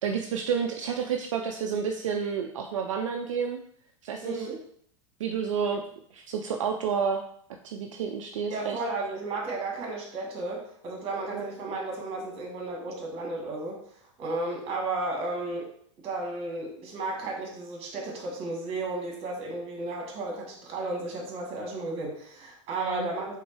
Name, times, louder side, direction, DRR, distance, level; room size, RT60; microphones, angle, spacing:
voice 1, 0.0-3.6 4.0-4.6 5.2-5.8 6.1-7.2 7.6-8.8 11.3-11.5 22.8-23.1, right 6 dB, 75° right, 3 dB, 0.5 m, -30 dB
voice 2, 4.2-4.6 8.5-13.8 14.2-15.7 16.0-23.4, right 2 dB, 35° right, 0 dB, 1.7 m, -33 dB
4.2 x 3.6 x 3.2 m, 0.63 s
hypercardioid pair, 100°, 16 cm